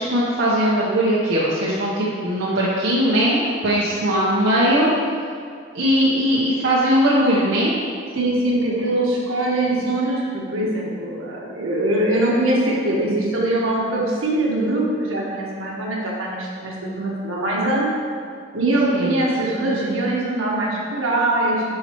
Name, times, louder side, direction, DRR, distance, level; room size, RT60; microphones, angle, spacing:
voice 1, 0.0-4.9 5.7-7.7 18.9-19.2, equal, 70° right, -7 dB, 1.0 m, -19 dB
voice 2, 8.1-17.9 18.5-21.6, right 1 dB, 85° right, -4 dB, 1.4 m, -22 dB
10.5 x 4.3 x 3.0 m, 2.2 s
head